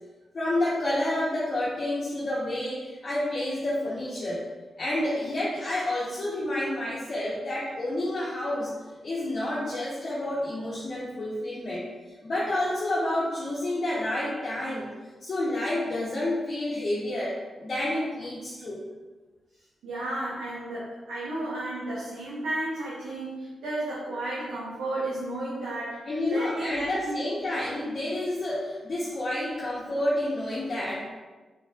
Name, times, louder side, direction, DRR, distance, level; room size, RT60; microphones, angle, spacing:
voice 1, 0.3-4.4 4.8-8.7 9.0-11.8 12.2-14.9 15.2-18.8 26.1-31.0, left 1 dB, 50° left, -7 dB, 0.8 m, -29 dB
voice 2, 19.8-27.3, right 1 dB, 90° right, -9 dB, 0.8 m, -33 dB
4.1 x 3.2 x 2.3 m, 1.3 s
supercardioid pair, 45°, 0 cm